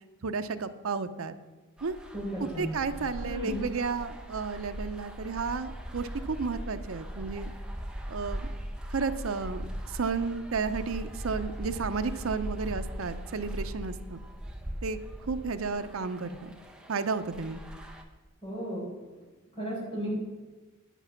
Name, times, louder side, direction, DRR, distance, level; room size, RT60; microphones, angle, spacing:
voice 1, 0.2-1.3 1.8-2.0 2.4-7.5 8.1-8.5 8.9-14.2 14.8-16.5 16.9-17.6, right 4 dB, 80° right, 9 dB, 0.6 m, -32 dB
sound 1, 1.8-18.0, equal, 5° right, 0.8 m, -40 dB
voice 2, 2.1-2.7 3.2-3.6 18.4-18.8 19.6-20.1, equal, 25° left, -4 dB, 4.4 m, -34 dB
9.8 x 8.1 x 5.8 m, 1.2 s
head